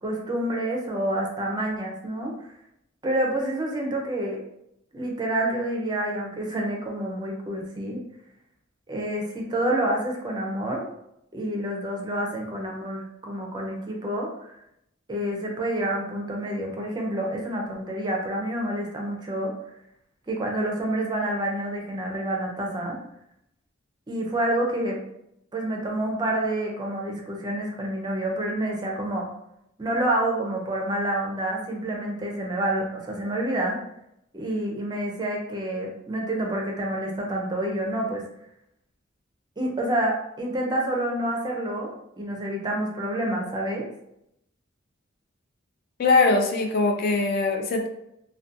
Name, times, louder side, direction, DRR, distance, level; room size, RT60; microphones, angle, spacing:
voice 1, 0.0-2.5 3.0-4.4 4.9-8.0 8.9-10.8 11.3-14.6 15.1-19.5 20.3-23.0 24.1-25.0 25.5-29.3 29.8-33.8 34.3-38.2 39.6-43.9, right 1 dB, 20° right, 0 dB, 0.4 m, -28 dB
voice 2, 46.0-47.9, left 3 dB, 50° left, 3 dB, 0.4 m, -21 dB
2.5 x 2.2 x 2.5 m, 0.80 s
head